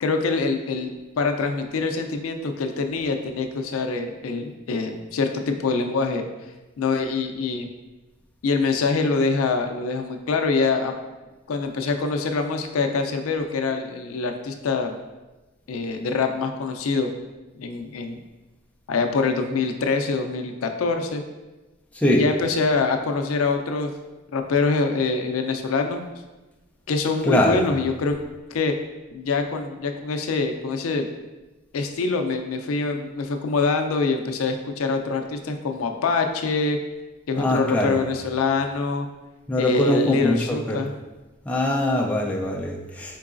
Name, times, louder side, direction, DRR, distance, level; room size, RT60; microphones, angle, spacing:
voice 1, 0.0-0.9 1.2-6.2 6.8-7.7 8.4-10.9 11.5-14.9 15.7-17.1 17.6-18.2 18.9-21.2 22.1-23.9 24.3-26.0 26.9-28.2 28.5-28.7 29.1-31.1 31.7-36.8 37.3-39.1 39.6-40.9, left 4 dB, 85° left, 5 dB, 0.4 m, -24 dB
voice 2, 27.3-27.6 37.4-38.0 39.5-40.8 41.5-43.2, left 1 dB, 5° left, -2 dB, 0.4 m, -22 dB
4.6 x 3.8 x 2.5 m, 1.1 s
head